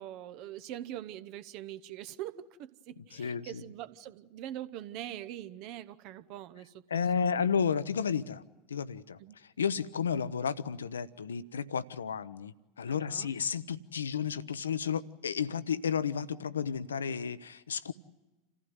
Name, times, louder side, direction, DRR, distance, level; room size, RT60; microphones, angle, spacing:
voice 1, 0.0-7.5 9.2-9.4 12.9-13.3, right 12 dB, 45° right, 13 dB, 1.0 m, -43 dB
voice 2, 3.1-3.6 6.9-8.4 8.7-9.2 9.6-17.9, left 7 dB, 75° left, 17 dB, 0.8 m, -32 dB
28.0 x 15.0 x 9.4 m, 1.1 s
figure-of-eight pair, 85°, 0 cm